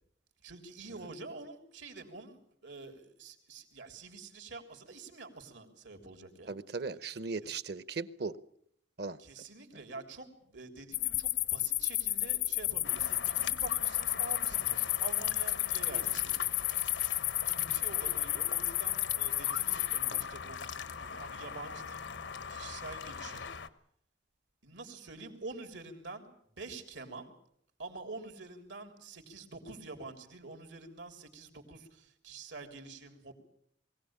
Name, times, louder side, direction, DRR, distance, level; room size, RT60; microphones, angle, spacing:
voice 1, 0.4-6.5 9.2-16.6 17.4-22.1 22.5-23.5 24.6-27.3 27.8-33.3, right 3 dB, 90° right, 5 dB, 3.5 m, -47 dB
voice 2, 6.5-8.4 9.0-9.2 9.7-9.8, right 4 dB, 60° right, 15 dB, 0.9 m, -38 dB
sound 1, 10.9-20.2, left 16 dB, 65° left, 0.8 m, -32 dB
sound 2, 12.8-23.7, left 5 dB, 85° left, 1.1 m, -42 dB
22.0 x 17.0 x 8.8 m, 0.69 s
head